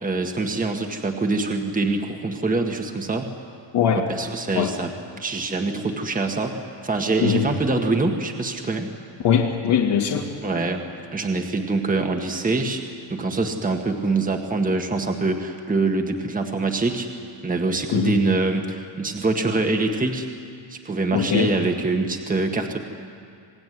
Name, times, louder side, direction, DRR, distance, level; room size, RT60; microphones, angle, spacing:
voice 1, 0.0-3.3 3.9-4.9 5.2-8.9 10.4-10.8 11.1-12.8 13.1-17.1 17.4-20.3 20.7-22.8, right 3 dB, 20° right, 4 dB, 1.8 m, -24 dB
voice 2, 9.2-10.2 17.9-18.1 21.1-21.5, left 8 dB, 70° left, -3 dB, 2.3 m, -20 dB
27.0 x 19.5 x 9.6 m, 2.4 s
cardioid pair, 140°, 44 cm